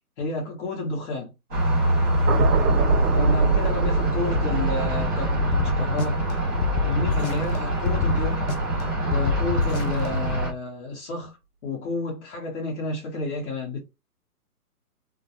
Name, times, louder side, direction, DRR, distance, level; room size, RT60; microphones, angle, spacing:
voice 1, 0.2-1.3 3.1-6.2 6.8-8.4 9.1-13.8, left 2 dB, 50° left, 1.1 m, -30 dB
sound 1, 1.5-10.5, right 1 dB, 5° left, 0.4 m, -25 dB
sound 2, 2.3-8.6 8.9-9.2, right 4 dB, 70° right, 0.6 m, -26 dB
sound 3, 5.4-6.3 6.6-7.6 7.9-8.8 9.1-10.1, left 6 dB, 65° left, 0.5 m, -26 dB
2.3 x 2.2 x 2.8 m
hypercardioid pair, 135°, 46 cm